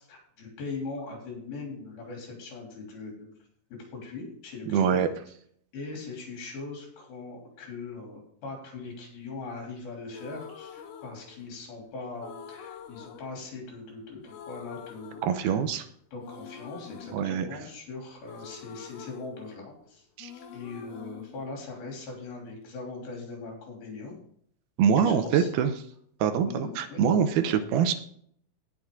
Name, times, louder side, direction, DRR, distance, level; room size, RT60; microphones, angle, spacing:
voice 1, 0.0-3.3 3.7-5.0 5.7-15.6 16.1-20.1 20.3-24.1 25.0-25.5 26.5-27.0, left 3 dB, 70° left, 0 dB, 5.0 m, -40 dB
voice 2, 4.7-5.1 15.2-15.9 17.1-17.6 20.2-20.3 24.8-25.7 26.2-28.0, right 7 dB, 80° right, 9 dB, 2.6 m, -24 dB
sound 1, 10.1-11.8 12.2-14.0 14.2-15.8 16.2-19.9 20.2-22.2, left 7 dB, 85° left, 2.8 m, -46 dB
18.0 x 6.0 x 3.8 m, 0.64 s
omnidirectional pair, 4.5 m